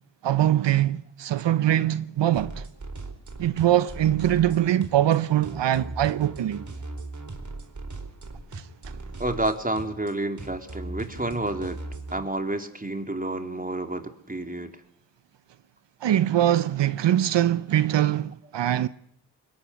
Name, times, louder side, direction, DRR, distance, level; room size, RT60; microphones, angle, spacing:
voice 1, 0.2-2.6 3.4-6.6 8.5-8.6 16.0-18.9, right 12 dB, 75° right, 0.9 m, -22 dB
sound 1, 2.3-12.2, right 2 dB, 40° right, 4.6 m, -38 dB
voice 2, 9.2-11.8 12.1-14.7, right 2 dB, 20° right, 3.9 m, -30 dB
21.5 x 19.0 x 10.0 m
cardioid pair, 45°, 43 cm